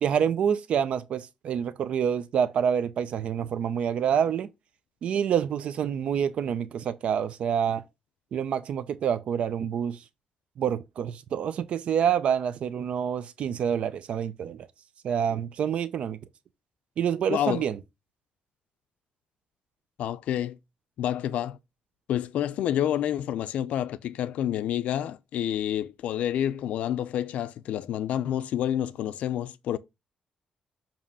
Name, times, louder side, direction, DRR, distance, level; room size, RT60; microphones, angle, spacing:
voice 1, 0.0-4.5 5.0-7.8 8.3-10.0 10.6-14.7 15.0-16.2 17.0-17.8, right 8 dB, 60° right, 0.5 m, -27 dB
voice 2, 17.3-17.7 20.0-20.6 21.0-21.6 22.1-29.8, left 11 dB, 85° left, 0.4 m, -28 dB
7.4 x 3.0 x 5.4 m
wide cardioid pair, 165°, 2 cm